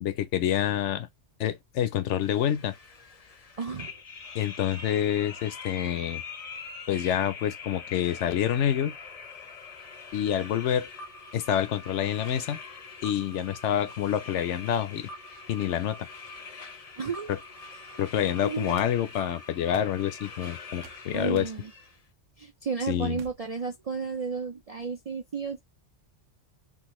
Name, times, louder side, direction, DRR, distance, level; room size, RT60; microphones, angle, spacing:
voice 1, 0.0-1.1 1.4-2.7 4.3-6.2 6.9-9.0 10.1-10.9 11.3-12.6 13.0-15.1 15.5-16.0 17.3-17.4 18.0-21.5 22.9-23.2, left 10 dB, 75° left, 0.9 m, -27 dB
sound 1, 2.2-22.0, left 4 dB, 40° left, 0.6 m, -43 dB
voice 2, 3.6-3.9 17.0-17.3 17.9-18.0 18.4-18.7 21.1-21.7 22.4-25.6, right 5 dB, 55° right, 0.4 m, -33 dB
sound 2, 18.8-18.9 19.7-20.0 20.8-21.0 21.4-21.6 23.1-23.4, right 10 dB, 85° right, 0.9 m, -46 dB
3.1 x 2.4 x 3.0 m
omnidirectional pair, 1.3 m